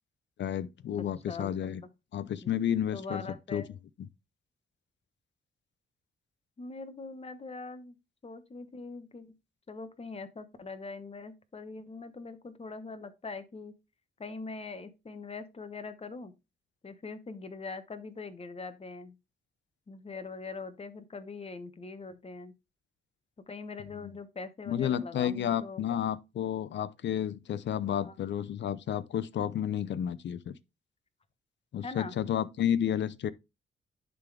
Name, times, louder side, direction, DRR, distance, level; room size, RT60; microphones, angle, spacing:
voice 1, 0.4-1.8 2.1-3.3 3.5-3.6 24.0-24.1 24.7-30.6 31.7-33.3, left 9 dB, 65° left, 0.6 m, -31 dB
voice 2, 1.0-1.5 2.9-3.7 6.6-7.9 8.2-9.3 9.7-13.7 14.2-16.3 16.8-19.2 19.9-22.5 23.5-25.8 27.9-28.1 31.8-32.2, left 4 dB, 30° left, 1.1 m, -42 dB
10.5 x 3.8 x 3.3 m
cardioid pair, 90°, 20 cm